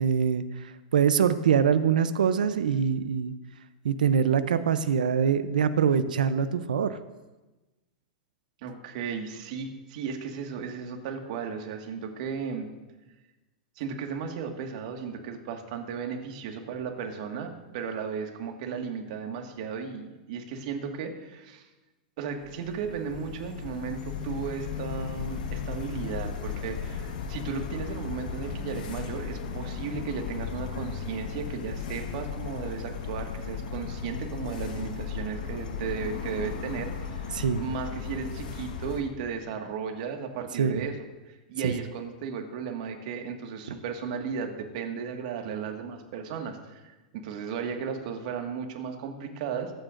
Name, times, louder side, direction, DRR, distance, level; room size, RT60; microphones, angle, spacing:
voice 1, 0.0-3.3 3.8-7.0 37.3-37.6 40.6-40.9 41.6-41.7, right 7 dB, 90° right, 12 dB, 0.6 m, -24 dB
voice 2, 8.6-12.7 13.7-21.7 22.2-49.7, right 6 dB, 60° right, 3 dB, 1.8 m, -35 dB
sound 1, 22.4-39.0, left 6 dB, 80° left, 1.4 m, -36 dB
22.5 x 9.1 x 2.6 m, 1.1 s
hypercardioid pair, 120°, 4 cm